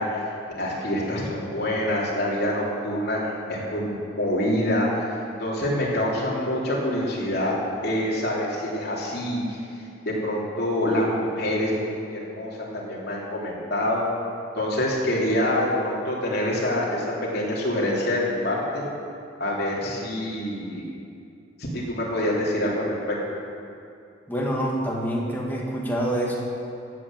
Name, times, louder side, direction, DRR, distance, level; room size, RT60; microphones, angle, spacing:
voice 1, 0.0-5.1 5.4-7.6 7.8-9.6 10.0-14.0 14.6-17.1 17.3-18.8 19.4-20.8 21.7-23.2, left 1 dB, 55° left, -5 dB, 3.3 m, -26 dB
voice 2, 24.3-26.4, right 1 dB, 10° left, -3 dB, 2.1 m, -26 dB
16.0 x 8.6 x 7.6 m, 2.5 s
head